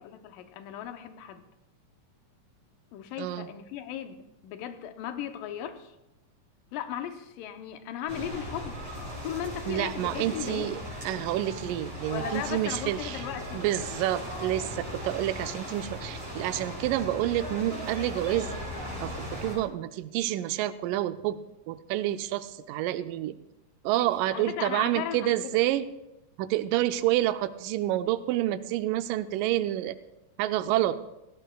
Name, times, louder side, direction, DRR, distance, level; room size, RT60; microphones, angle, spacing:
voice 1, 0.0-1.4 2.9-5.9 6.7-8.9 9.2-10.9 12.1-13.6 14.0-14.1 24.0-25.6, left 10 dB, 85° left, 8 dB, 2.5 m, -37 dB
sound 1, 8.1-19.6, equal, 50° right, 5.9 m, -38 dB
voice 2, 9.7-13.2 13.5-18.5 19.0-21.4 21.7-23.4 23.8-25.9 26.4-30.0 30.4-31.0, right 14 dB, 85° right, 12 dB, 2.2 m, -28 dB
18.0 x 15.5 x 2.3 m, 0.93 s
omnidirectional pair, 3.8 m